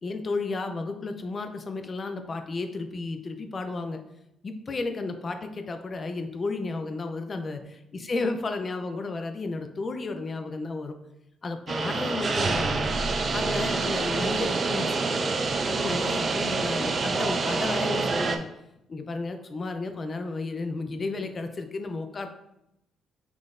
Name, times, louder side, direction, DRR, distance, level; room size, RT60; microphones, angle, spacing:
voice 1, 0.0-4.0 4.4-11.0 11.4-12.9 13.3-15.3 15.6-18.5 18.9-22.3, left 3 dB, 40° left, 7 dB, 0.5 m, -33 dB
sound 1, 11.7-18.4, right 4 dB, 45° right, 0.4 m, -27 dB
6.0 x 3.2 x 2.5 m, 0.84 s
cardioid pair, 90°, 0 cm